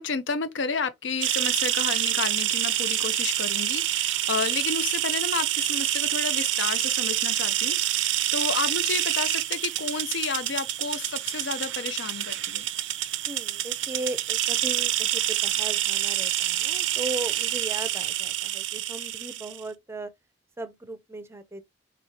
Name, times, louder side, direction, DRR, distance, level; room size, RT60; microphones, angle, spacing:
voice 1, 0.0-12.7, left 5 dB, 80° left, 0.5 m, -31 dB
sound 1, 1.2-19.6, right 13 dB, 85° right, 0.4 m, -27 dB
voice 2, 13.3-20.1 20.6-21.6, right 2 dB, 15° right, 0.4 m, -37 dB
4.0 x 3.1 x 2.7 m
head